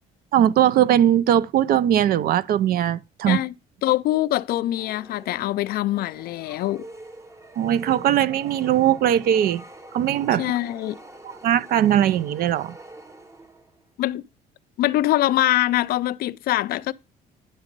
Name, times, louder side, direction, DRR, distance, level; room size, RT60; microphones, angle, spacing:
voice 1, 0.3-3.4 7.6-9.6 9.9-10.5 11.4-12.7, right 11 dB, 60° right, 0.4 m, -20 dB
voice 2, 3.8-6.9 10.4-11.0 14.0-14.2 14.8-16.9, left 15 dB, 65° left, 0.4 m, -23 dB
sound 1, 4.7-13.8, right 1 dB, 15° right, 0.8 m, -45 dB
9.9 x 4.0 x 5.2 m
cardioid pair, 110°, 17 cm